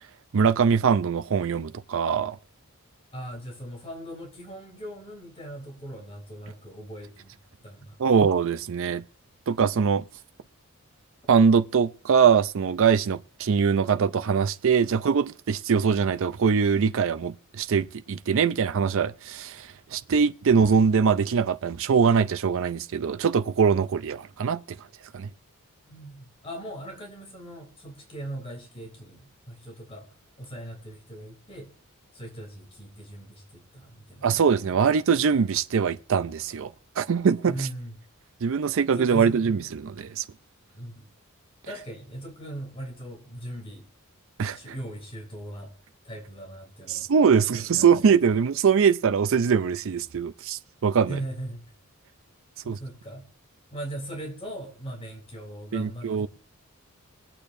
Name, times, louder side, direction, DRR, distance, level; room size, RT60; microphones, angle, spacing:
voice 1, 0.3-2.4 8.0-9.0 9.5-10.0 11.3-24.8 25.1-25.3 34.2-37.6 38.4-40.2 44.4-44.6 46.9-51.2 52.7-52.8 55.7-56.3, right 6 dB, 65° right, 0.4 m, -22 dB
voice 2, 3.1-7.3 7.6-8.0 25.9-30.1 30.4-31.7 32.1-34.5 37.5-37.9 38.9-39.4 40.7-41.1 41.7-43.9 44.5-45.7 46.0-47.1 47.6-48.0 51.1-51.6 52.6-53.3 53.7-56.3, right 1 dB, 25° left, 3.2 m, -39 dB
21.0 x 8.4 x 2.6 m
head